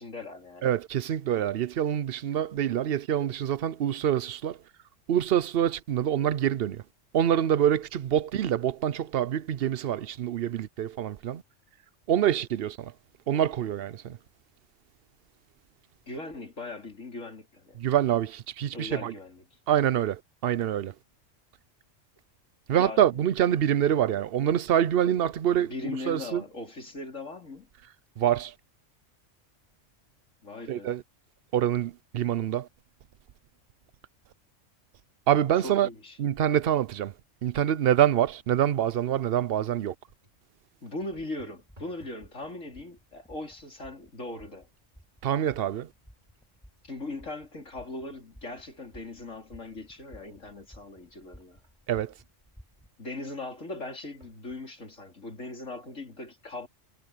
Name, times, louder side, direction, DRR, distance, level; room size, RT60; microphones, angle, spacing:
voice 1, 0.0-0.7 16.1-17.8 18.7-19.6 22.7-23.2 25.0-27.7 30.4-30.9 35.5-36.2 40.8-44.7 46.8-51.6 53.0-56.7, left 2 dB, 75° left, 4.4 m, -39 dB
voice 2, 0.6-4.6 5.1-6.8 7.1-11.4 12.1-12.9 13.3-14.2 17.8-19.1 19.7-20.9 22.7-25.7 26.1-26.4 28.2-28.5 30.7-31.0 31.5-32.7 35.3-35.9 36.2-37.1 37.4-39.9 45.2-45.9 51.9-52.1, right 10 dB, 55° right, 0.8 m, -26 dB
sound 1, 40.0-40.5 41.4-42.3 42.6-43.1 43.9-44.0 44.4-48.0 48.5-48.6 49.3-52.0 54.2-54.7 55.4-55.5 55.7-55.8, equal, 35° right, 5.4 m, -62 dB
sound 2, 41.0-52.9, equal, 5° left, 6.0 m, -56 dB
omnidirectional pair, 1.3 m